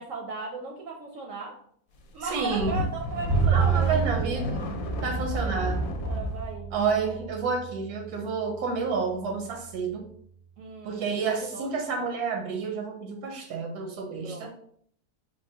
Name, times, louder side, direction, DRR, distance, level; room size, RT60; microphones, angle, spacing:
voice 1, 0.0-1.6 2.1-4.1 5.3-5.6 6.0-7.2 10.6-12.0 14.2-14.6, right 4 dB, 70° right, 1 dB, 0.8 m, -37 dB
sound 1, 2.2-6.5, left 1 dB, 70° left, 0.9 m, -31 dB
voice 2, 2.2-2.8 3.5-4.7 5.0-5.8 6.7-10.0 10.8-14.5, right 5 dB, 85° right, 3 dB, 1.1 m, -30 dB
Bowed string instrument, 3.3-9.4, right 6 dB, 20° right, 0.4 m, -30 dB
3.5 x 2.2 x 3.4 m, 0.63 s
omnidirectional pair, 1.6 m